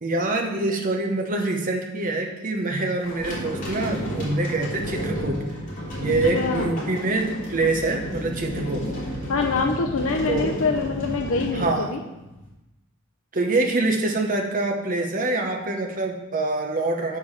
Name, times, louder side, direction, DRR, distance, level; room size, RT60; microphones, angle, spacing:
voice 1, 0.0-5.4 6.0-8.9 10.3-10.5 11.5-11.9 13.3-17.2, right 2 dB, 40° right, 2 dB, 0.9 m, -25 dB
sound 1, 3.0-12.5, equal, 40° left, 2.8 m, -32 dB
voice 2, 6.3-6.7 9.3-12.0, left 4 dB, 70° left, 1 dB, 0.5 m, -25 dB
6.8 x 4.9 x 5.6 m, 0.99 s
head